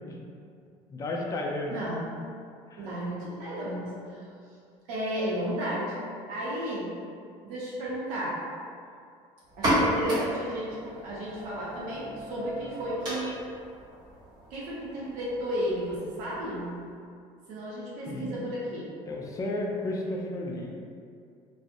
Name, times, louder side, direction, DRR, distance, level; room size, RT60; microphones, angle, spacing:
voice 1, 0.9-1.8 2.7-2.9 18.1-18.3 19.0-20.8, left 1 dB, 25° left, -1 dB, 0.3 m, -33 dB
voice 2, 1.7-2.1 2.8-4.2 4.9-5.9 6.3-6.9 7.4-8.4 9.6-13.4 14.5-16.7 17.5-18.9, equal, 80° right, -6 dB, 0.6 m, -33 dB
sound 1, 9.4-16.9, equal, 30° right, 1.1 m, -33 dB
2.5 x 2.0 x 2.5 m, 2.4 s
cardioid pair, 115°, 13 cm